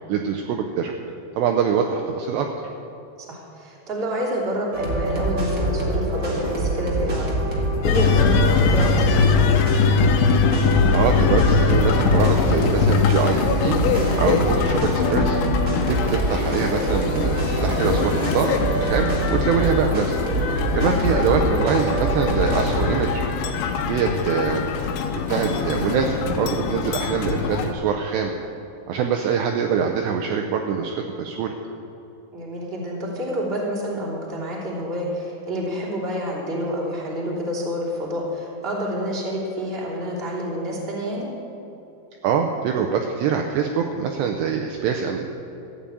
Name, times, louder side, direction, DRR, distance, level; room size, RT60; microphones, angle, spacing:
voice 1, 0.1-0.9 1.4-2.5 10.9-13.8 14.2-15.4 15.8-20.2 20.8-23.2 23.9-24.8 25.3-28.3 28.9-31.5 42.2-45.2, right 6 dB, 80° right, 3 dB, 2.6 m, -24 dB
voice 2, 3.3-9.4 32.3-41.3, equal, 15° right, -5 dB, 2.4 m, -28 dB
sound 1, 4.7-22.9, right 1 dB, 45° right, 1.1 m, -25 dB
sound 2, 7.8-27.7, left 6 dB, 80° left, 3.2 m, -22 dB
sound 3, 10.5-11.4 11.9-26.9, equal, 30° left, 0.9 m, -34 dB
14.5 x 8.8 x 8.5 m, 2.9 s
omnidirectional pair, 5.5 m